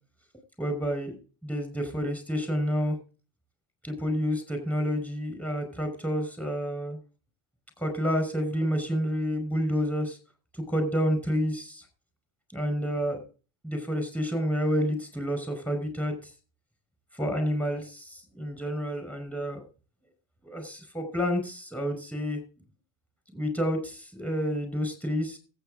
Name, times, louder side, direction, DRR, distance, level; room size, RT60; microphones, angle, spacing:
voice 1, 0.6-1.1 1.4-3.0 3.8-7.0 7.8-10.2 10.7-11.8 12.5-13.2 13.6-16.1 17.1-19.6 20.4-22.4 23.3-25.4, equal, 5° left, 6 dB, 5.2 m, -29 dB
14.0 x 8.8 x 3.8 m, 0.36 s
supercardioid pair, 100°, 45 cm